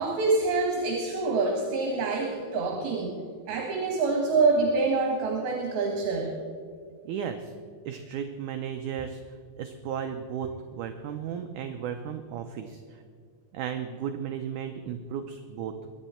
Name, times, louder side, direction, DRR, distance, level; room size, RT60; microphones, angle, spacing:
voice 1, 0.0-3.2 3.5-6.3, right 3 dB, 75° right, 1 dB, 3.3 m, -26 dB
voice 2, 7.0-7.5 7.8-9.2 9.6-13.0 13.5-15.7, right 8 dB, 90° right, 6 dB, 1.7 m, -35 dB
22.5 x 10.0 x 4.4 m, 2.2 s
omnidirectional pair, 4.5 m